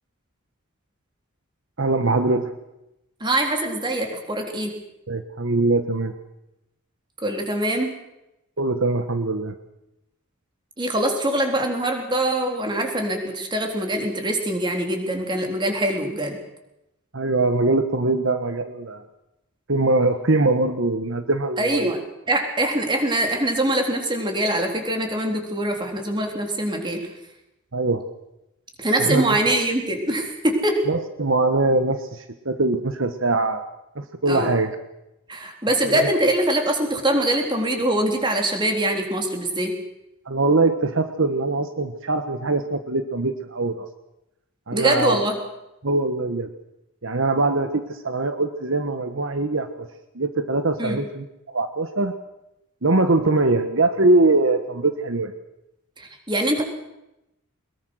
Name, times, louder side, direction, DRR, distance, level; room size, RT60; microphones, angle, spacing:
voice 1, 1.8-2.5 5.1-6.1 8.6-9.5 17.1-19.0 19.7-21.9 27.7-28.0 29.0-29.6 30.9-33.6 34.0-34.7 35.9-36.1 40.2-43.9 44.7-45.2 45.8-46.5 47.0-49.9 50.1-52.1 52.8-55.3, right 2 dB, 65° right, 8 dB, 1.3 m, -22 dB
voice 2, 3.2-4.7 7.2-7.9 10.8-16.4 21.6-22.0 22.3-27.0 28.8-30.8 34.3-34.6 35.3-39.7 44.7-45.4 50.8-51.0 56.0-56.6, right 1 dB, 20° right, 3 dB, 3.7 m, -23 dB
22.5 x 21.5 x 6.4 m, 0.88 s
head